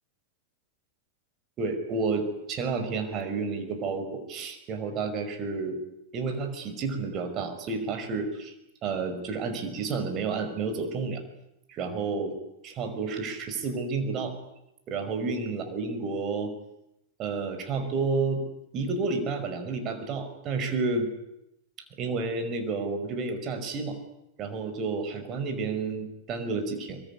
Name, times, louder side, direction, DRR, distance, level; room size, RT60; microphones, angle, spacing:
voice 1, 1.6-5.8 6.1-8.5 8.8-11.2 11.7-12.4 12.6-14.3 14.9-16.5 17.2-18.4 18.7-21.1 22.0-24.0 24.4-27.0, right 4 dB, 35° right, 7 dB, 5.6 m, -30 dB
23.5 x 23.0 x 9.9 m, 0.84 s
figure-of-eight pair, 90°, 0 cm